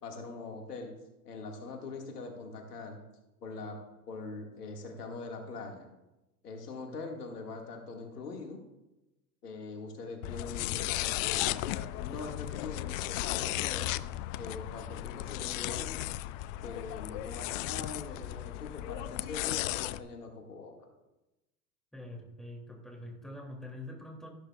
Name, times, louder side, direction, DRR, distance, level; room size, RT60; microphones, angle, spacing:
voice 1, 0.0-0.9 1.2-3.0 3.4-3.8 4.1-5.9 6.4-8.6 9.4-13.9 14.4-15.9 16.6-20.9, left 3 dB, 90° left, 1 dB, 2.2 m, -42 dB
sound 1, 10.2-20.0, left 16 dB, 60° left, 0.6 m, -35 dB
voice 2, 21.9-24.3, left 1 dB, ahead, -1 dB, 2.9 m, -45 dB
14.0 x 12.0 x 2.5 m, 0.97 s
hypercardioid pair, 90°, 45 cm